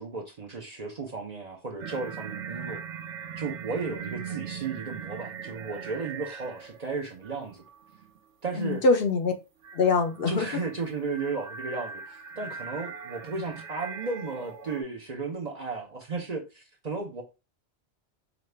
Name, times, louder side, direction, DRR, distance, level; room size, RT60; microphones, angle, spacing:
voice 1, 0.0-2.8 3.4-7.6 8.4-8.8 10.3-17.2, right 4 dB, 45° right, 0.6 m, -34 dB
sound 1, 1.8-6.9 7.2-8.2 9.6-14.8, right 6 dB, 85° right, 1.0 m, -40 dB
voice 2, 8.6-9.3 9.7-10.5, left 3 dB, 60° left, 0.7 m, -23 dB
5.0 x 2.3 x 3.2 m
omnidirectional pair, 1.2 m